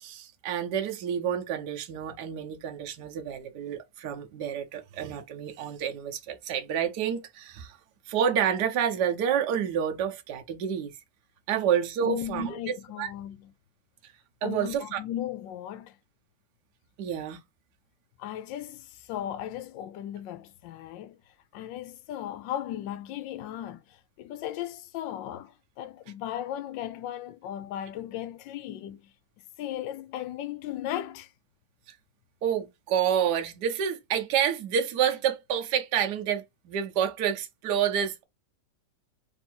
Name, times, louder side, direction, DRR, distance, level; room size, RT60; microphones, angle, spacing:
voice 1, 0.0-7.8 8.1-11.0 11.5-12.6 13.0-13.1 14.4-15.0 17.0-17.4 31.9-32.0 32.4-38.2, right 8 dB, 65° right, 1.3 m, -29 dB
voice 2, 12.0-13.5 14.4-16.0 18.2-21.2 21.5-29.1 29.6-31.3, left 11 dB, 80° left, 1.3 m, -36 dB
3.6 x 2.6 x 4.3 m
omnidirectional pair, 2.0 m